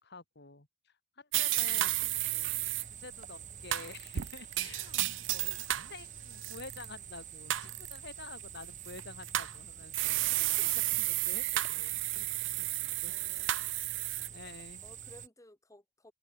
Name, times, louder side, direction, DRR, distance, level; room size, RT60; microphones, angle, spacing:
voice 1, 0.0-2.5 2.8-13.1 13.7-13.9 14.3-14.8, left 3 dB, 60° left, 3.5 m, -50 dB
sound 1, 1.3-2.8 3.7-5.9 6.3-6.9 7.5-8.0 8.9-9.5 9.9-14.3, right 16 dB, 70° right, 0.5 m, -32 dB
sound 2, 1.5-15.3, right 8 dB, 40° right, 3.4 m, -48 dB
voice 2, 13.1-14.1 14.8-16.1, left 1 dB, 15° left, 3.3 m, -59 dB
head